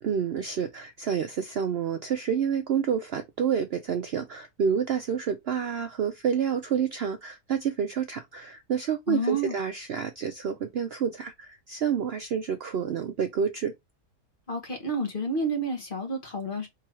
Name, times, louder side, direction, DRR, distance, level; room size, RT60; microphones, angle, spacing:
voice 1, 0.0-13.7, right 7 dB, 85° right, 0.5 m, -29 dB
voice 2, 9.1-9.5 14.5-16.7, right 1 dB, 35° left, 1.4 m, -29 dB
3.8 x 3.0 x 4.7 m
omnidirectional pair, 1.7 m